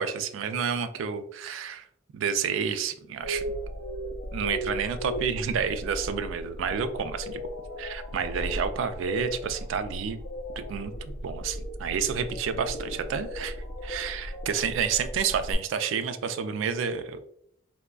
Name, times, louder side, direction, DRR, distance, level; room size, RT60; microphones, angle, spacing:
voice 1, 0.0-1.9 2.1-3.4 4.3-7.4 7.8-10.2 10.6-10.9 11.2-13.6 13.8-17.2, right 6 dB, 70° right, 9 dB, 0.3 m, -30 dB
sound 1, 3.2-15.5, equal, 70° left, 0.5 m, -36 dB
3.5 x 2.2 x 2.2 m, 0.71 s
head